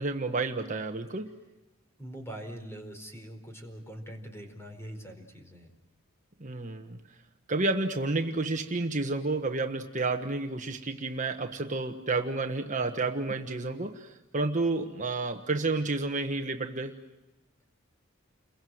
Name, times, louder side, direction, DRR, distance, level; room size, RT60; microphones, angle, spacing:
voice 1, 0.0-1.3 6.4-7.0 7.5-17.0, right 3 dB, 40° right, 5 dB, 1.3 m, -30 dB
voice 2, 2.0-5.7, right 1 dB, 15° left, 4 dB, 4.7 m, -43 dB
29.5 x 22.5 x 7.9 m, 1.0 s
head